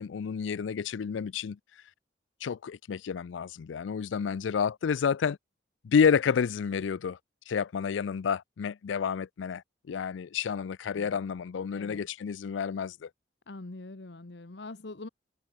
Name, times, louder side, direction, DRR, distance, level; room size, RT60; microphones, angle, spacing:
voice 1, 0.0-1.6 2.4-5.4 5.8-7.2 7.5-9.6 9.9-13.1, left 6 dB, 85° left, 0.4 m, -29 dB
voice 2, 11.7-12.1 13.5-15.1, left 2 dB, 70° left, 1.1 m, -43 dB
head